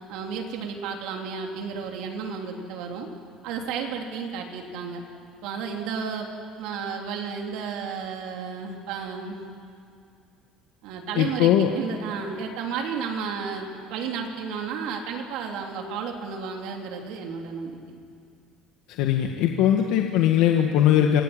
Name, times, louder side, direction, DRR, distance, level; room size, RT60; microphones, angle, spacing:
voice 1, 0.1-3.1 3.4-5.0 5.4-6.3 6.6-9.4 10.8-18.0, right 6 dB, 75° right, 1 dB, 3.4 m, -32 dB
voice 2, 11.2-11.7 19.0-21.2, left 10 dB, 80° left, 3 dB, 1.7 m, -20 dB
26.5 x 18.5 x 8.9 m, 2.4 s
cardioid pair, 165°, 0 cm